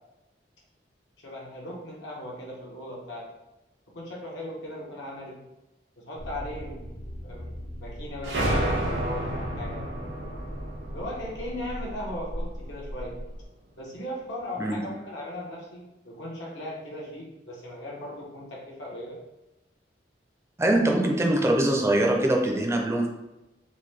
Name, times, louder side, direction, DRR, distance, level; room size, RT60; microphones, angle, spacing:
voice 1, 1.2-3.3 3.9-5.4 6.0-6.9 7.2-7.5 7.8-9.8 10.9-13.2 13.8-19.2, left 1 dB, 80° left, -4 dB, 1.0 m, -38 dB
sound 1, 6.1-13.4, equal, 60° left, 0.6 m, -39 dB
sound 2, 8.2-12.7, right 1 dB, 70° right, 0.7 m, -31 dB
voice 2, 20.6-23.1, right 1 dB, 15° right, 2 dB, 0.4 m, -23 dB
3.8 x 2.2 x 3.2 m, 0.99 s
head